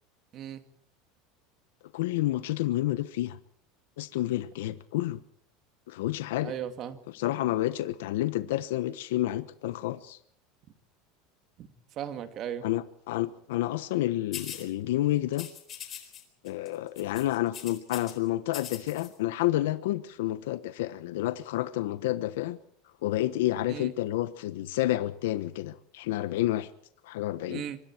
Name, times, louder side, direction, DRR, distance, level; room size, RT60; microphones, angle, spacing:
voice 1, 1.9-3.4 4.0-5.2 5.9-6.5 7.1-10.2 12.6-15.5 16.4-22.6 23.0-26.7 27.0-27.6, left 15 dB, 85° left, 12 dB, 1.2 m, -29 dB
voice 2, 6.4-7.0 11.6-11.7 12.0-12.7 23.7-23.9 27.5-27.8, right 9 dB, 30° right, 9 dB, 2.1 m, -36 dB
sound 1, 14.3-14.7 15.3-16.2 16.5-16.7 17.0-18.1 18.5-19.1, left 10 dB, 25° left, 4.1 m, -41 dB
25.5 x 24.5 x 4.6 m, 0.63 s
supercardioid pair, 170°, 0 cm